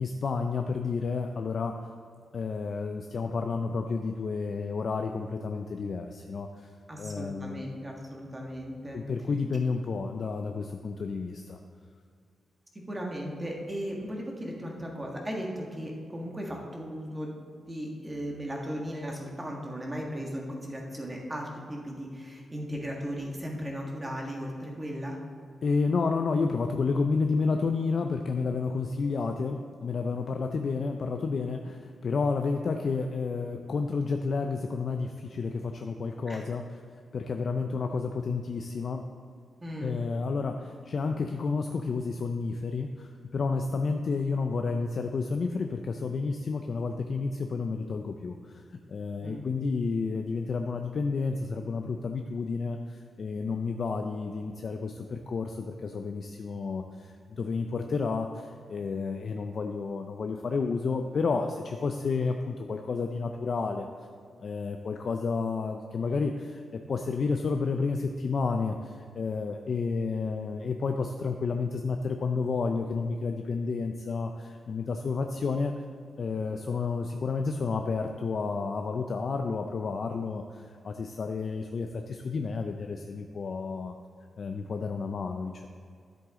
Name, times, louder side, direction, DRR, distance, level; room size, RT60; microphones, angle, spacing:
voice 1, 0.0-1.8 2.3-6.7 7.0-7.6 8.9-11.6 25.6-36.6 37.1-39.0 39.8-48.6 48.9-63.9 64.4-75.7 76.2-83.9 84.4-85.7, left 4 dB, 55° left, 4 dB, 0.5 m, -31 dB
voice 2, 6.9-9.1 12.9-25.2 36.3-36.4 39.6-40.0 43.7-43.8 49.2-49.4, equal, 20° right, -1 dB, 1.6 m, -36 dB
10.5 x 7.9 x 3.7 m, 2.2 s
cardioid pair, 110°, 0 cm